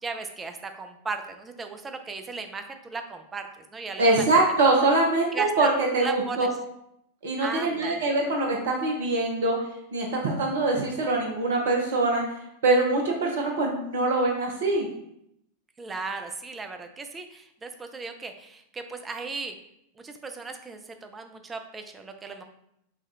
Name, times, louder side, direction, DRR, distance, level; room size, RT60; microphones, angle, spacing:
voice 1, 0.0-4.3 5.3-6.5 7.4-8.0 15.8-19.5 20.0-22.4, right 4 dB, 15° right, 6 dB, 0.4 m, -36 dB
voice 2, 4.0-6.5 7.2-9.6 9.9-12.2 12.6-14.9, right 2 dB, 60° right, 0 dB, 0.8 m, -23 dB
5.9 x 2.4 x 2.7 m, 0.77 s
figure-of-eight pair, 90°, 0 cm